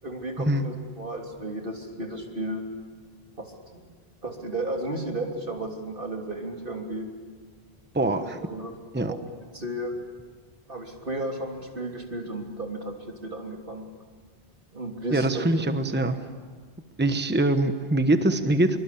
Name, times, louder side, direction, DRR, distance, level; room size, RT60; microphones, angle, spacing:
voice 1, 0.0-2.7 3.4-3.8 4.2-7.1 8.0-8.8 9.1-9.2 9.5-9.9 10.7-13.9 14.7-15.6, right 1 dB, 55° right, 1 dB, 3.5 m, -34 dB
voice 2, 7.9-8.4 8.9-9.1 15.1-16.2 17.0-18.8, right 2 dB, 10° right, 8 dB, 1.2 m, -23 dB
26.0 x 24.0 x 8.6 m, 1.5 s
omnidirectional pair, 1.1 m